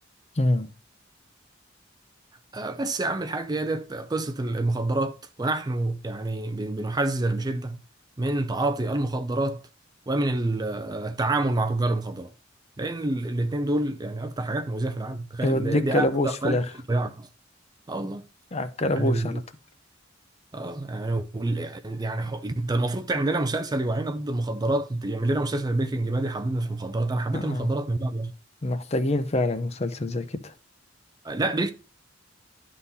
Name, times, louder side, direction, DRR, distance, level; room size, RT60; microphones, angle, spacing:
voice 1, 0.4-0.7 15.4-16.6 18.5-19.4 27.3-27.7 28.6-30.5, left 1 dB, 35° left, 0.6 m, -25 dB
voice 2, 2.5-7.8 8.2-9.6 10.1-12.3 12.8-16.6 16.9-17.3 17.9-18.2 18.9-19.4 20.5-28.3 31.2-31.7, right 2 dB, 20° right, 0.5 m, -27 dB
11.0 x 3.8 x 4.1 m
head